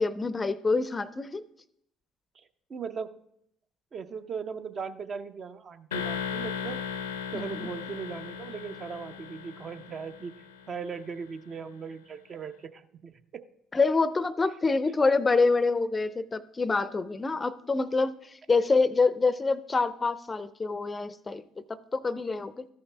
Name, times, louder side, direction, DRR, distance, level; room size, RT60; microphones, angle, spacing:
voice 1, 0.0-1.4 7.3-7.7 13.7-22.7, left 3 dB, 25° left, 17 dB, 0.4 m, -26 dB
voice 2, 2.7-3.1 3.9-6.8 7.3-10.3 10.7-13.4, right 6 dB, 45° right, 9 dB, 0.6 m, -38 dB
sound 1, 5.9-10.8, left 7 dB, 85° left, 0.6 m, -37 dB
13.5 x 5.7 x 3.3 m, 0.72 s
hypercardioid pair, 55°, 0 cm